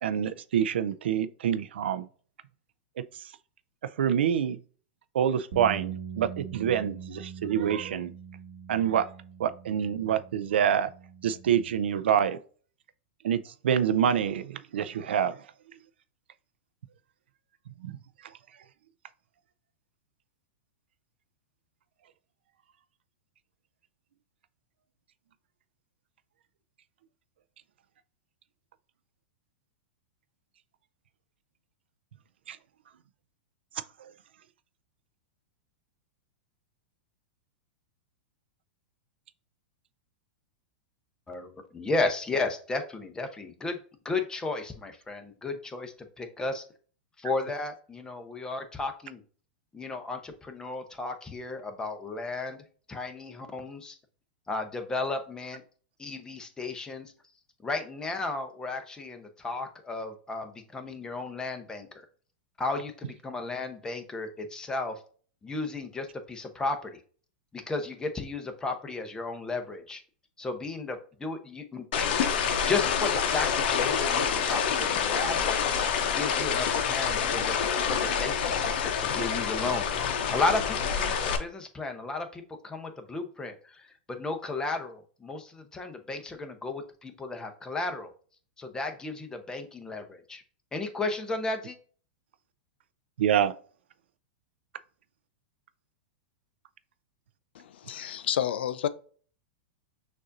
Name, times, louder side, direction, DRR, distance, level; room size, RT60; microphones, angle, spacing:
voice 1, 0.0-2.1 4.0-4.6 5.1-8.1 8.7-9.1 9.4-10.9 11.2-12.4 13.2-15.4 17.8-18.0 32.5-32.6 34.0-34.1 93.2-93.5, right 9 dB, 80° right, 0.4 m, -26 dB
sound 1, 5.5-11.8, right 7 dB, 60° right, 0.9 m, -42 dB
voice 2, 41.3-43.8 44.0-46.6 47.2-49.2 49.7-54.0 54.5-55.6 56.0-57.1 57.6-62.0 62.6-65.0 65.4-67.0 67.5-70.0 70.4-72.1 72.7-77.6 77.8-79.9 80.3-88.1 88.6-90.4 90.7-91.8, left 3 dB, 10° left, 0.8 m, -34 dB
sound 2, 71.9-81.4, left 7 dB, 60° left, 0.8 m, -27 dB
voice 3, 97.5-98.9, left 10 dB, 75° left, 0.4 m, -30 dB
6.5 x 2.6 x 2.6 m
hypercardioid pair, 120°, 6 cm